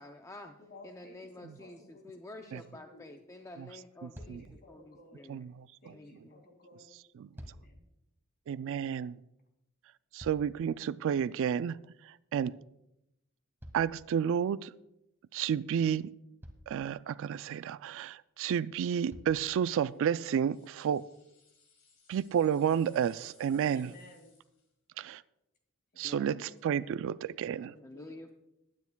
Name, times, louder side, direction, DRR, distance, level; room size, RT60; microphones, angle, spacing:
voice 1, 0.0-0.6 0.8-5.4 5.9-6.4 26.0-26.4 27.6-28.3, left 2 dB, 15° left, 5 dB, 0.5 m, -49 dB
voice 2, 0.6-3.1 4.2-5.2 5.8-6.9 7.4-7.8 23.7-24.4 25.9-28.2, left 1 dB, 45° left, 3 dB, 2.4 m, -56 dB
voice 3, 4.0-4.4 5.3-5.9 7.2-7.3 8.5-9.2 10.1-11.8 12.0-12.6 13.7-14.7 15.3-16.1 16.7-21.1 22.1-23.9 25.0-25.2 26.0-27.7, right 8 dB, 65° right, 18 dB, 0.3 m, -31 dB
sound 1, 4.1-4.6 7.0-7.8 9.7-10.8 13.6-14.6 15.8-15.9 16.4-16.9 18.3-18.4 19.1-19.5 20.3-20.4, equal, 10° right, 1.6 m, -50 dB
sound 2, 19.9-24.7, left 5 dB, 70° left, 2.9 m, -65 dB
20.5 x 9.4 x 2.2 m, 0.87 s
head